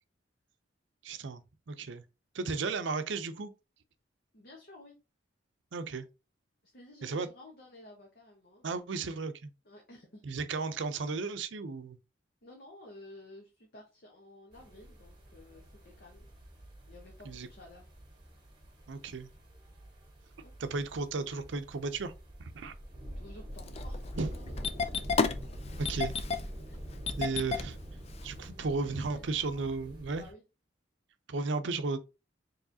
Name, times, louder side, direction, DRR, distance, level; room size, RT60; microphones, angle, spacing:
voice 1, 1.0-1.4 1.7-2.0 2.3-3.5 5.7-6.0 7.0-7.3 8.6-9.5 10.3-12.0 17.3-17.5 18.9-19.3 20.6-22.1 22.4-22.7 24.2-24.3 25.8-26.1 27.2-27.8 28.2-30.2 31.3-32.0, right 4 dB, 75° right, 0.5 m, -34 dB
voice 2, 4.3-4.9 6.6-8.7 9.6-10.2 12.4-16.3 16.9-17.9 20.4-20.5 22.6-22.7 23.1-24.7 26.7-26.8 28.8-29.7 30.1-30.4, left 2 dB, 55° left, 1.0 m, -53 dB
sound 1, 14.5-30.3, equal, 25° right, 1.3 m, -46 dB
Engine starting, 23.5-28.5, left 4 dB, 35° left, 0.4 m, -33 dB
4.7 x 3.1 x 2.7 m
head